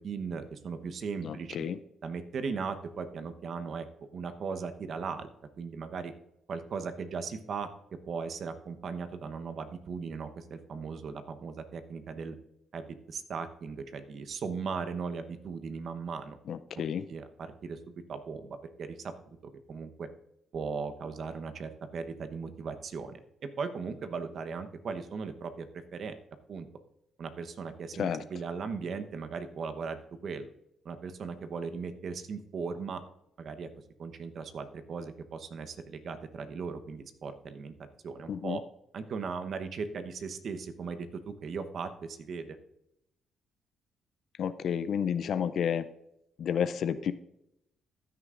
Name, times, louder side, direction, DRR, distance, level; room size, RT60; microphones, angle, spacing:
voice 1, 0.0-1.6 2.0-3.9 4.1-5.3 5.6-6.1 6.5-7.7 8.1-12.4 12.7-16.4 16.8-16.9 17.1-20.1 20.5-23.2 23.6-26.2 26.5-26.7 27.2-30.5 30.8-33.0 33.4-33.7 34.0-37.7 38.0-38.6 38.9-42.6, right 5 dB, 60° right, 9 dB, 0.9 m, -38 dB
voice 2, 1.2-1.8 16.5-17.0 28.0-28.2 38.3-38.6 44.4-45.9 46.4-47.1, left 8 dB, 65° left, 12 dB, 0.4 m, -31 dB
15.0 x 9.7 x 2.5 m, 0.83 s
cardioid pair, 90°, 0 cm